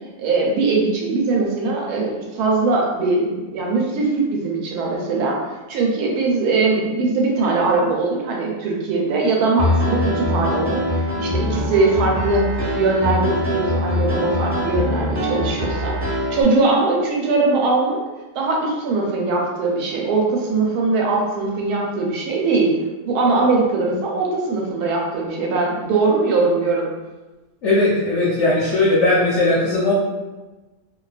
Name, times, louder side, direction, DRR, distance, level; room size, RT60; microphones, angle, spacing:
voice 1, 0.2-5.4 5.7-10.8 11.2-12.5 12.7-18.0 18.3-22.7 23.0-26.9, right 3 dB, 80° right, -1 dB, 1.1 m, -21 dB
Piano, 9.6-16.4, left 1 dB, 15° right, 0.9 m, -23 dB
voice 2, 27.6-29.9, left 2 dB, 65° left, -7 dB, 0.8 m, -18 dB
2.6 x 2.2 x 2.3 m, 1.2 s
omnidirectional pair, 1.7 m